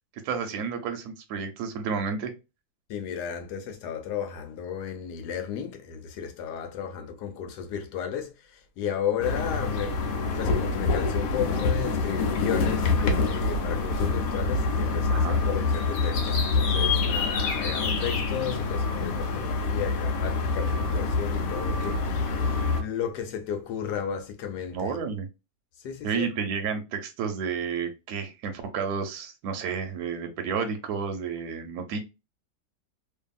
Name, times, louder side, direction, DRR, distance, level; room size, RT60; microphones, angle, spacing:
voice 1, 0.2-2.3 15.1-15.4 24.7-25.3 26.0-32.0, right 6 dB, 70° right, 1.0 m, -31 dB
voice 2, 2.9-10.0 10.4-25.1 25.8-26.3, left 8 dB, 85° left, 1.2 m, -34 dB
sound 1, 9.2-22.8, left 3 dB, 65° left, 1.0 m, -26 dB
2.7 x 2.5 x 2.2 m
omnidirectional pair, 1.8 m